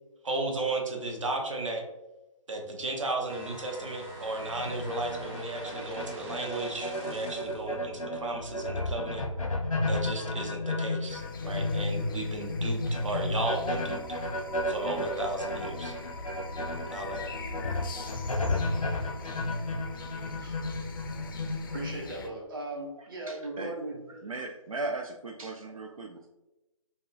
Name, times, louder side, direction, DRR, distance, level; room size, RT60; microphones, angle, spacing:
voice 1, 0.2-1.8 2.5-9.2 9.9-14.0 14.7-15.9 16.9-17.3, right 2 dB, 65° right, 1 dB, 1.0 m, -34 dB
sound 1, 3.3-7.7, right 2 dB, 15° right, 0.7 m, -45 dB
sound 2, 4.4-21.9, left 1 dB, 85° left, 0.6 m, -33 dB
sound 3, 11.1-22.3, left 5 dB, 40° left, 0.4 m, -45 dB
voice 2, 21.7-24.0, right 2 dB, 40° right, -1 dB, 1.0 m, -38 dB
voice 3, 23.0-23.7 24.1-26.3, right 3 dB, 80° right, 2 dB, 0.4 m, -38 dB
5.2 x 2.3 x 2.5 m, 1.0 s
figure-of-eight pair, 140°, 17 cm